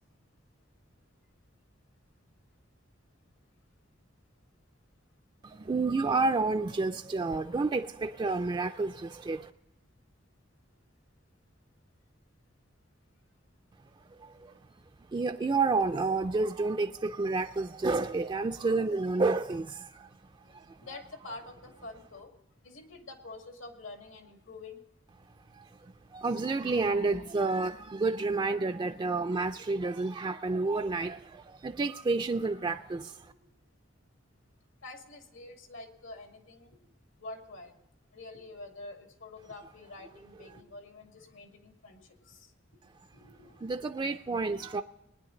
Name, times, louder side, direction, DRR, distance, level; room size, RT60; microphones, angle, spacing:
voice 1, 5.4-9.5 14.1-14.6 15.1-20.1 20.5-20.8 25.5-33.3 43.6-44.8, right 3 dB, 25° right, 0.3 m, -30 dB
voice 2, 20.4-22.3 22.6-24.8 33.4-33.6 34.8-36.8 37.2-37.7 38.1-42.5 43.1-43.5, left 2 dB, 80° left, 2.1 m, -47 dB
20.5 x 10.0 x 3.9 m
head